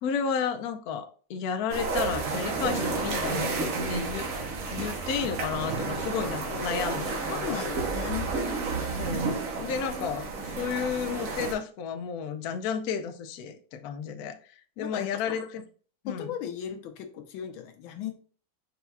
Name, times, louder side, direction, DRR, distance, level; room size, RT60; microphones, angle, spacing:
voice 1, 0.0-3.5 3.8-4.3 4.6-7.6 9.0-14.4 14.8-15.6 16.0-16.3, left 7 dB, 70° left, 0.9 m, -32 dB
sound 1, 1.7-11.5, right 4 dB, 55° right, 1.1 m, -31 dB
voice 2, 7.3-8.6 14.8-15.4 16.1-18.1, left 9 dB, 85° left, 1.5 m, -37 dB
5.6 x 2.3 x 4.1 m
omnidirectional pair, 2.1 m